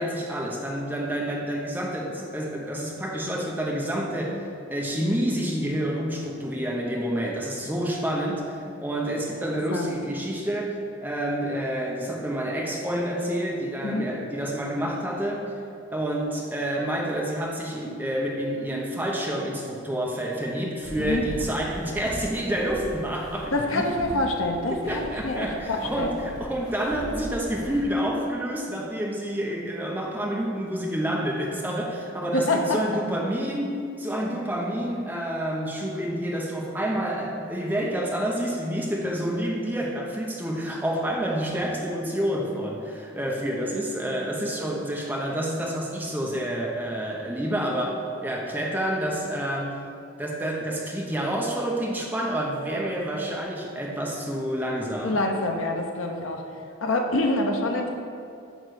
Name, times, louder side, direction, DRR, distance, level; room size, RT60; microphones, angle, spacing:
voice 1, 0.0-4.4 4.7-15.5 15.9-24.1 24.7-49.7 50.2-55.2, equal, 10° right, -1 dB, 0.7 m, -28 dB
sound 1, 20.8-27.8, equal, 15° left, 1.0 m, -40 dB
voice 2, 23.5-26.2 32.3-32.8 55.0-56.4 56.8-57.9, left 2 dB, 75° left, 3 dB, 0.8 m, -26 dB
9.1 x 3.2 x 6.3 m, 2.4 s
head